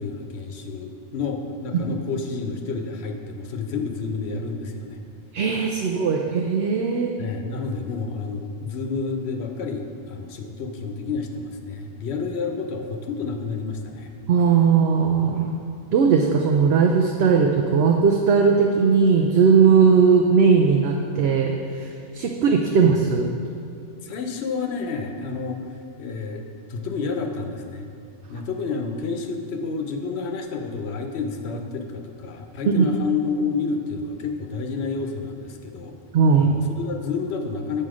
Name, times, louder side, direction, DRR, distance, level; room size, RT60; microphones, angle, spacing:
voice 1, 0.0-5.0 7.2-14.1 24.0-25.6 26.0-27.9 28.3-35.9 36.4-37.8, left 4 dB, 75° left, 4 dB, 1.0 m, -30 dB
voice 2, 5.3-7.1 14.3-15.5 15.9-21.9 22.1-23.3 32.8-33.0 36.1-36.5, right 5 dB, 70° right, 1 dB, 0.8 m, -18 dB
7.7 x 5.5 x 4.9 m, 2.4 s
omnidirectional pair, 1.1 m